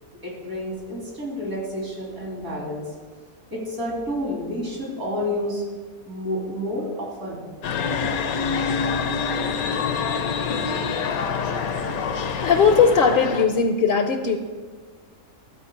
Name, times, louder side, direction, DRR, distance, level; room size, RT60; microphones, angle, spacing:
voice 1, 0.2-2.9 3.5-5.6 6.1-7.7, left 1 dB, 75° right, -3 dB, 3.5 m, -30 dB
sound 1, 7.6-13.4, left 5 dB, 80° left, 1.2 m, -26 dB
voice 2, 12.4-14.4, left 5 dB, 55° left, 6 dB, 0.6 m, -19 dB
13.5 x 4.6 x 6.5 m, 1.4 s
omnidirectional pair, 1.5 m